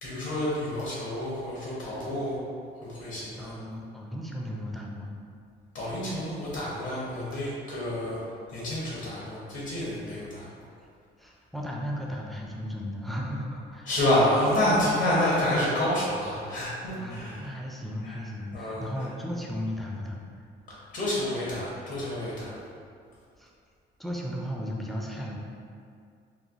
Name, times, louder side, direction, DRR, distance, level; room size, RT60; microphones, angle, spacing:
voice 1, 0.0-2.4 2.8-3.6 5.7-8.2 8.5-10.6 13.8-17.5 18.0-18.2 18.5-19.1 20.9-22.5, left 1 dB, 75° left, -7 dB, 0.8 m, -28 dB
voice 2, 3.4-5.2 11.2-13.9 16.9-20.2 23.4-23.5 24.0-25.4, equal, ahead, -3 dB, 0.4 m, -35 dB
3.1 x 2.1 x 2.4 m, 2.3 s
cardioid pair, 90°, 20 cm